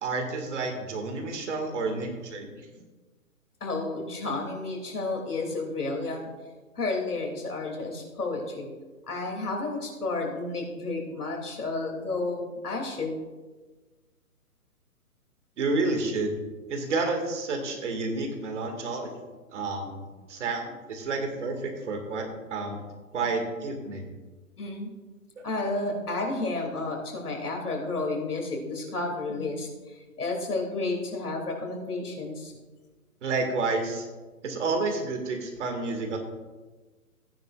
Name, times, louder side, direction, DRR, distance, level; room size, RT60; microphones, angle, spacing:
voice 1, 0.0-2.5 15.6-16.3 16.7-19.1 19.5-20.0 20.3-20.6 20.9-22.8 23.1-24.1 25.4-25.5 33.2-34.1 34.4-36.2, right 3 dB, 50° right, 4 dB, 2.2 m, -30 dB
voice 2, 3.6-6.3 6.7-8.7 9.1-13.2 23.1-23.3 24.6-24.9 25.4-29.7 30.2-32.5, left 3 dB, 80° left, 1 dB, 3.1 m, -31 dB
15.5 x 9.8 x 2.5 m, 1.3 s
hypercardioid pair, 140°, 45 cm